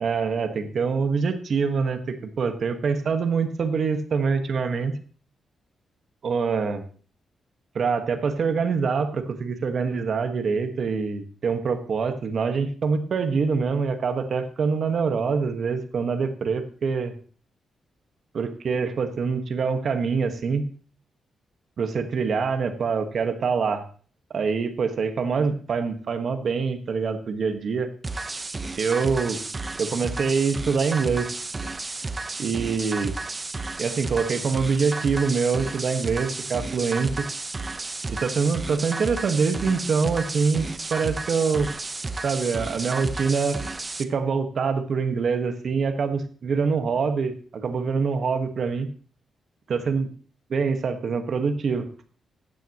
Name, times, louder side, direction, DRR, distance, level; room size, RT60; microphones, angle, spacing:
voice 1, 0.0-5.0 6.2-6.8 7.7-17.1 18.3-20.7 21.8-23.8 24.3-27.9 28.8-29.4 29.7-31.3 32.4-33.1 33.8-37.2 38.1-41.7 42.2-43.6 44.0-48.9 49.7-50.1 50.5-51.9, right 5 dB, 60° right, 8 dB, 1.5 m, -25 dB
sound 1, 28.0-44.0, right 3 dB, 25° right, 0.8 m, -32 dB
15.0 x 9.3 x 3.0 m, 0.41 s
cardioid pair, 90°, 0 cm